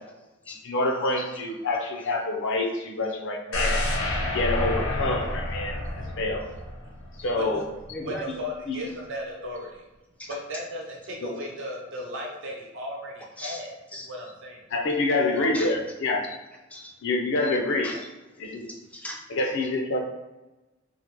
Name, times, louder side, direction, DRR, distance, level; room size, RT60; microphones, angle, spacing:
voice 1, 0.5-3.9 4.3-5.8 6.2-6.5 7.2-7.6 8.7-8.8 11.2-11.3 14.7-16.4 17.0-17.9 18.4-18.7 19.3-20.0, left 2 dB, 65° left, 2 dB, 0.6 m, -26 dB
sound 1, 3.5-7.5 7.9-8.0, left 1 dB, 85° left, 0.9 m, -29 dB
voice 2, 6.8-7.7 8.0-9.9 10.3-13.7 14.0-14.7 15.1-15.6, equal, 65° right, -1 dB, 0.8 m, -36 dB
voice 3, 7.9-8.4 10.2-10.4 13.4-14.1 15.5-15.8 16.7-16.9 17.8-18.1 18.7-19.2, left 1 dB, 5° left, -1 dB, 0.4 m, -38 dB
3.8 x 2.1 x 3.0 m, 1.1 s
head